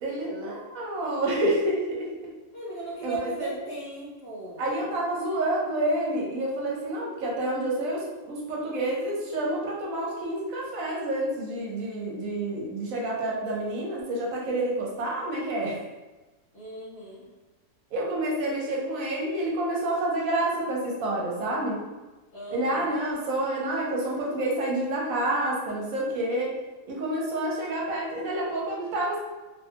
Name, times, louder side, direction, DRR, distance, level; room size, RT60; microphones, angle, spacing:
voice 1, 0.0-2.3 3.0-3.5 4.6-15.8 17.9-21.8 22.5-26.5 26.9-29.2, right 1 dB, 80° right, -3 dB, 1.1 m, -28 dB
voice 2, 2.5-5.0 16.5-17.3 22.3-22.9, right 2 dB, 65° left, -9 dB, 1.1 m, -37 dB
3.0 x 2.2 x 2.7 m, 1.2 s
omnidirectional pair, 1.4 m